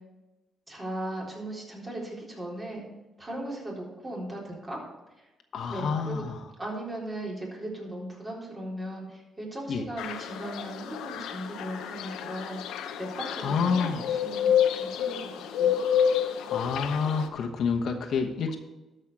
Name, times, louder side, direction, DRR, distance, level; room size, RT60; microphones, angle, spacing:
voice 1, 0.7-2.8 3.2-4.8 5.7-6.2 6.6-15.8, right 1 dB, 25° right, -3 dB, 3.8 m, -38 dB
voice 2, 5.5-6.5 9.7-9.8 13.4-14.1 16.5-18.6, left 5 dB, 65° left, 3 dB, 1.1 m, -28 dB
sound 1, 10.0-17.3, left 8 dB, 85° left, 0.7 m, -29 dB
13.0 x 5.6 x 4.7 m, 1.1 s
cardioid pair, 90°, 0 cm